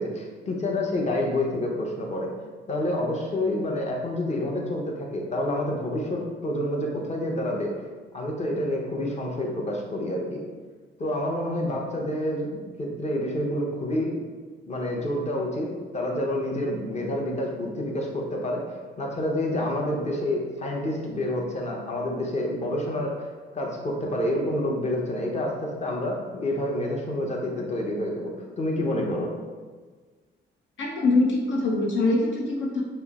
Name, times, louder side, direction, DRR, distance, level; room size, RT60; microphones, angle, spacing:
voice 1, 0.0-2.3 2.7-7.7 8.1-10.4 11.0-14.2 14.7-15.7 15.9-18.6 19.0-23.2 23.5-29.3, left 1 dB, 35° left, -1 dB, 0.9 m, -28 dB
voice 2, 30.8-32.8, left 2 dB, 70° left, -2 dB, 0.8 m, -23 dB
5.5 x 2.1 x 4.1 m, 1.4 s
cardioid pair, 90°, 20 cm